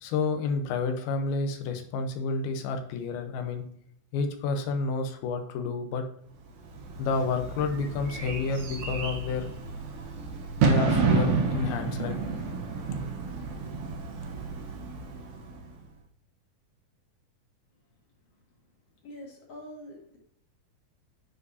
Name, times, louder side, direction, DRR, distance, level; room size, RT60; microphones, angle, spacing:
voice 1, 0.0-3.6 4.1-6.1 7.0-9.5 10.6-12.2, left 4 dB, 90° left, 6 dB, 2.8 m, -30 dB
Bird / Fireworks, 6.6-15.8, right 4 dB, 70° right, 1.4 m, -30 dB
voice 2, 19.0-20.2, left 1 dB, 50° left, -2 dB, 2.4 m, -44 dB
9.3 x 4.6 x 2.7 m, 0.64 s
omnidirectional pair, 4.3 m